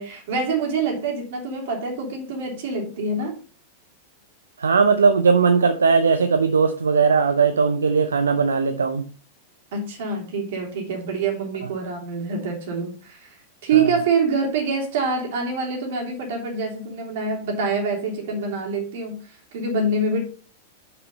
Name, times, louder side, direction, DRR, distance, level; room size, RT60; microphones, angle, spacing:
voice 1, 0.0-3.4 9.7-13.4 13.6-20.3, right 4 dB, 60° right, 3.0 m, -25 dB
voice 2, 4.6-9.0 13.7-13.9, right 5 dB, 80° right, 0.6 m, -18 dB
6.2 x 6.0 x 5.4 m
figure-of-eight pair, 95°, 0 cm